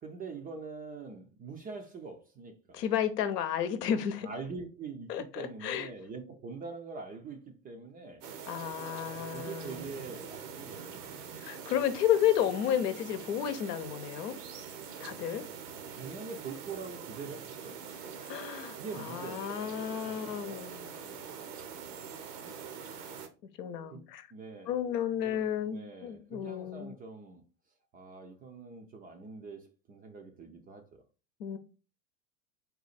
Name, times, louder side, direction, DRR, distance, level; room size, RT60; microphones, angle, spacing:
voice 1, 0.0-2.8 4.2-8.2 9.1-11.1 15.9-17.9 18.7-19.7 20.0-20.6 22.4-22.7 23.9-24.0 24.3-24.8 25.1-27.4 27.9-31.0, right 4 dB, 20° right, 0.4 m, -44 dB
voice 2, 2.7-4.3 5.1-5.9 8.5-9.8 11.4-14.4 15.0-15.5 18.2-20.9 23.6-24.3 24.7-27.0 31.4-31.6, left 9 dB, 75° left, 0.8 m, -32 dB
sound 1, 8.2-23.3, right 6 dB, 70° right, 0.9 m, -44 dB
4.0 x 2.4 x 4.1 m
hypercardioid pair, 100°, 48 cm